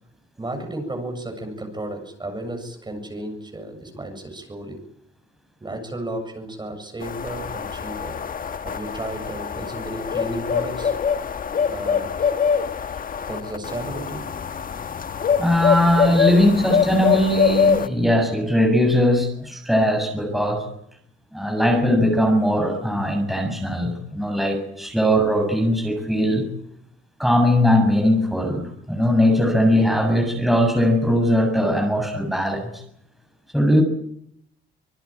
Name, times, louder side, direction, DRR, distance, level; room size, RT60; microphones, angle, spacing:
voice 1, 0.4-4.8 5.6-8.2 8.6-10.9 11.7-12.3 13.3-14.3, right 1 dB, 20° right, 5 dB, 7.5 m, -33 dB
sound 1, 7.0-17.9, left 6 dB, 45° left, 1.4 m, -24 dB
voice 2, 15.4-20.7 21.3-26.5 27.2-32.8 33.5-33.8, equal, ahead, 3 dB, 7.2 m, -20 dB
26.5 x 20.0 x 9.0 m, 0.73 s
cardioid pair, 90°, 20 cm